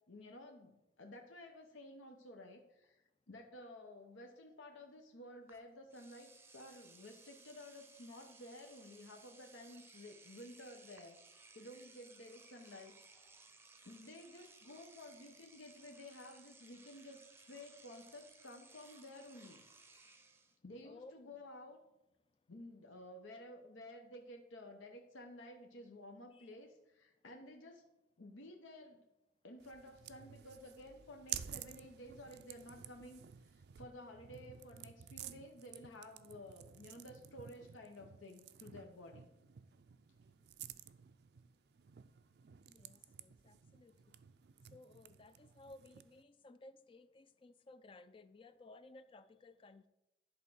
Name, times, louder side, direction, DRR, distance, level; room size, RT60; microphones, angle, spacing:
voice 1, 0.0-11.2 11.5-13.0 13.8-19.7 19.9-20.1 20.6-21.8 22.5-27.8 28.2-29.0 29.4-39.3, left 1 dB, 90° left, 3 dB, 0.9 m, -53 dB
Engine / Domestic sounds home sounds, 5.5-5.6 5.9-20.6, right 3 dB, 15° right, 0.6 m, -61 dB
voice 2, 20.8-21.4 26.3-26.5 42.7-44.2 44.7-49.9, left 2 dB, 25° left, 13 dB, 0.3 m, -58 dB
sound 1, 29.6-46.2, right 10 dB, 55° right, 0.4 m, -52 dB
11.0 x 3.7 x 6.1 m, 0.92 s
head